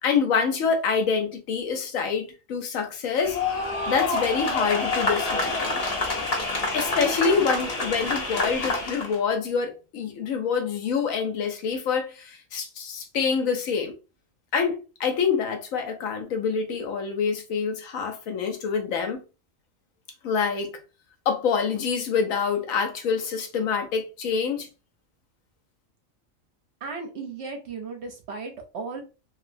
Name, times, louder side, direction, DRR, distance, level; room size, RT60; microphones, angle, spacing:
voice 1, 0.0-3.4 3.9-5.8 6.7-13.9 14.5-19.2 20.2-20.8 21.3-24.7, left 6 dB, 85° left, 1.2 m, -26 dB
sound 1, 3.2-9.2, left 3 dB, 40° left, 0.6 m, -27 dB
voice 2, 26.8-29.0, right 4 dB, 60° right, 0.9 m, -35 dB
2.9 x 2.7 x 2.5 m
omnidirectional pair, 1.4 m